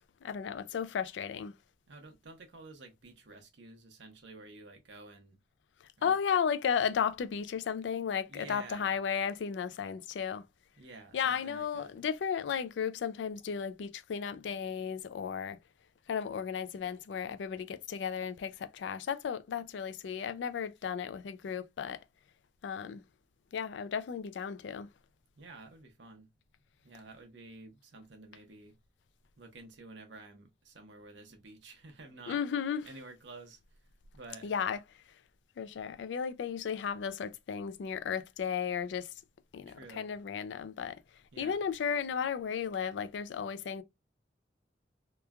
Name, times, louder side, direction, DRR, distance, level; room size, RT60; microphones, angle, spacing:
voice 1, 0.2-1.5 6.0-10.4 11.1-15.6 16.1-22.0 22.6-23.0 23.5-24.9 32.3-32.9 34.4-34.8 35.6-39.1 39.5-41.0 41.4-43.8, left 7 dB, 85° left, 0.3 m, -34 dB
voice 2, 1.9-5.4 6.0-6.1 8.3-9.0 10.8-11.9 25.4-26.3 26.8-28.8 29.4-32.4 32.9-33.6 34.1-34.5 39.7-40.1 41.3-41.6, right 3 dB, 80° right, 0.8 m, -51 dB
2.9 x 2.2 x 2.3 m
head